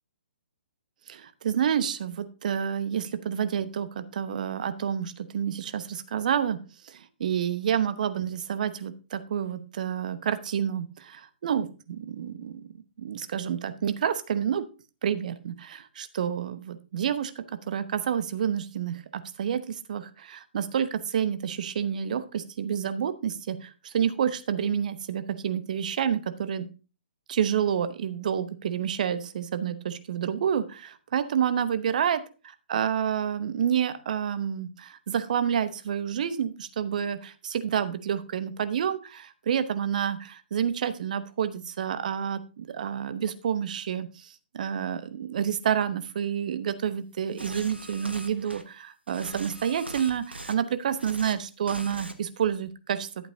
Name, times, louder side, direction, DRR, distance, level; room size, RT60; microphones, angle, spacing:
voice 1, 1.1-6.6 6.8-12.7 13.0-14.6 15.0-26.7 27.3-32.2 32.7-53.1, right 8 dB, 45° right, 12 dB, 0.8 m, -29 dB
sound 1, 47.4-48.6 49.1-50.5 50.9-51.3 51.7-52.1 52.4-52.7, right 1 dB, 85° right, 1.1 m, -41 dB
11.5 x 7.9 x 2.6 m, 0.33 s
figure-of-eight pair, 125°, 6 cm